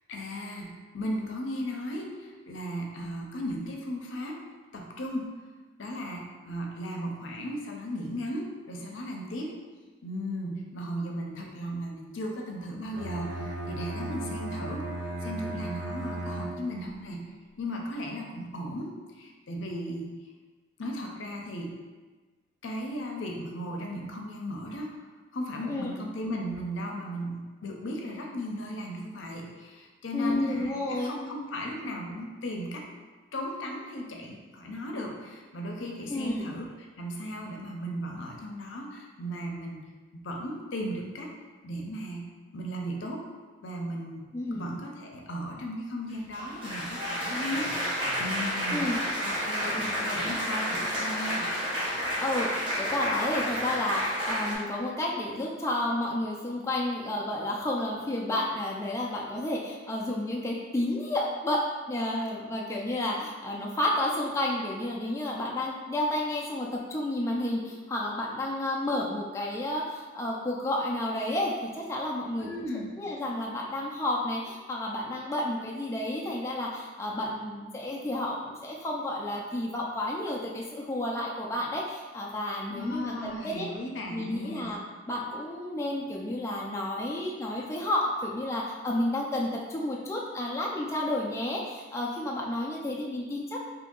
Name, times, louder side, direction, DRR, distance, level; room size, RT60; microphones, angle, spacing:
voice 1, 0.1-4.4 4.7-5.3 5.8-9.6 10.0-14.9 15.2-17.3 17.6-20.1 20.8-21.7 22.6-25.0 25.3-32.9 33.3-36.6 37.0-39.8 40.1-41.3 41.6-42.3 42.5-43.3 43.6-44.3 44.5-47.7 48.2-48.9 49.2-51.5 72.4-73.0 82.7-84.8, equal, 85° left, 0 dB, 0.6 m, -36 dB
Bowed string instrument, 12.9-17.0, right 2 dB, 75° right, 0.5 m, -36 dB
voice 2, 30.1-31.1 36.1-36.5 44.3-44.7 48.7-48.9 49.4-49.8 52.2-61.6 61.9-72.7 73.0-83.7 84.1-84.8 85.1-93.6, left 1 dB, 15° left, -3 dB, 0.3 m, -31 dB
Applause, 46.1-54.6, equal, 30° right, 0.8 m, -30 dB
2.8 x 2.6 x 3.7 m, 1.3 s
head